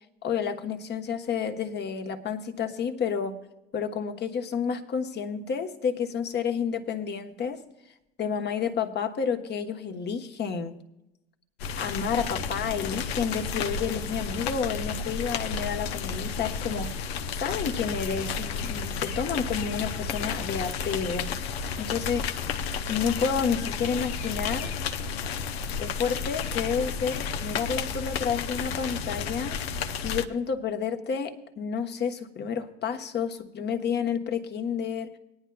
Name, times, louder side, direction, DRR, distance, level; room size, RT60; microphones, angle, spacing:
voice 1, 0.2-3.4 3.7-7.6 8.2-10.8 11.8-16.9 17.3-22.2 22.9-24.7 25.8-29.6 30.0-35.1, left 6 dB, 30° left, 5 dB, 1.1 m, -30 dB
sound 1, 11.6-30.3, left 6 dB, 70° left, 0.7 m, -32 dB
20.0 x 10.0 x 2.3 m, 0.90 s
figure-of-eight pair, 75°, 32 cm